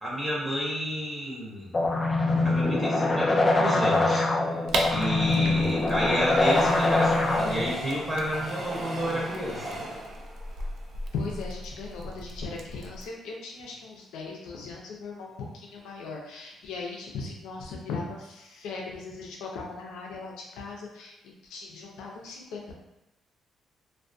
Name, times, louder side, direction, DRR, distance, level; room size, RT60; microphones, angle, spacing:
voice 1, 0.0-1.7 2.4-4.6 4.9-9.8, equal, 10° right, -5 dB, 0.7 m, -31 dB
sound 1, 1.7-7.7, left 2 dB, 30° left, 0.3 m, -24 dB
Train, 4.6-11.9 12.4-12.5 12.7-12.8, right 1 dB, 55° right, 0.8 m, -39 dB
sound 2, 4.7-13.1, right 2 dB, 75° right, 0.3 m, -38 dB
voice 2, 11.1-22.7, left 4 dB, 90° left, -1 dB, 0.5 m, -38 dB
2.3 x 2.2 x 2.5 m, 0.94 s
cardioid pair, 90°, 0 cm